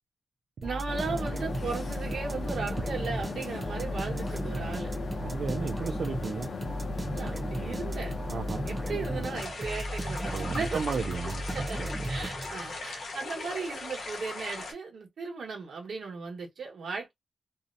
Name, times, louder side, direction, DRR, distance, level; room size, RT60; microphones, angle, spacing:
sound 1, 0.6-12.8, right 1 dB, 30° right, 0.7 m, -35 dB
voice 1, 0.6-4.9 7.1-8.1 8.6-10.8 11.5-17.1, right 4 dB, 80° right, 1.1 m, -36 dB
sound 2, 0.9-9.4, left 4 dB, 60° left, 0.6 m, -38 dB
voice 2, 5.2-6.5 8.3-8.7 10.3-11.5 11.8-11.9, right 5 dB, 65° right, 0.4 m, -34 dB
sound 3, 9.3-14.7, left 3 dB, 85° left, 0.8 m, -39 dB
2.6 x 2.1 x 2.6 m
wide cardioid pair, 175°, 0 cm